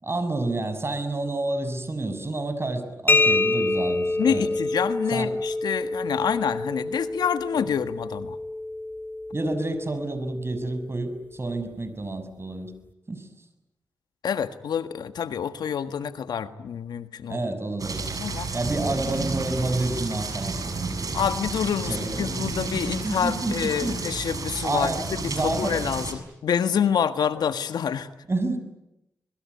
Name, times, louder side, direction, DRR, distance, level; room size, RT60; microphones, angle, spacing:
voice 1, 0.0-4.5 5.1-5.3 9.3-12.7 13.1-13.3 17.3-18.1 18.5-20.6 21.8-24.0 24.6-25.8 27.3-27.5 28.3-28.6, right 2 dB, 35° right, 10 dB, 6.5 m, -29 dB
sound 1, 3.1-10.6, left 2 dB, 30° left, 2.8 m, -27 dB
voice 2, 4.2-8.4 14.2-17.4 18.2-18.5 21.1-28.1, left 8 dB, 85° left, 12 dB, 1.6 m, -27 dB
sound 2, 17.8-26.1, right 4 dB, 60° right, 6.8 m, -31 dB
26.5 x 22.5 x 9.5 m, 0.89 s
cardioid pair, 45°, 7 cm